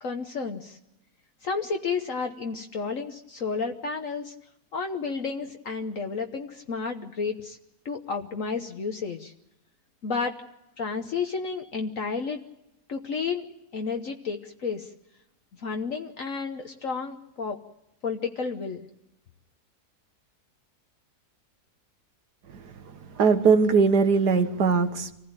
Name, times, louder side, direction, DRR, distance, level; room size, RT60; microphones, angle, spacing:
voice 1, 0.0-0.8 1.4-4.3 4.7-7.6 7.8-9.3 10.0-10.4 10.8-12.4 12.9-14.9 15.6-17.6 18.0-18.9, left 5 dB, 55° left, 4 dB, 1.4 m, -31 dB
voice 2, 23.2-25.1, right 5 dB, 85° right, 8 dB, 2.0 m, -20 dB
25.5 x 15.5 x 8.9 m, 0.87 s
omnidirectional pair, 1.7 m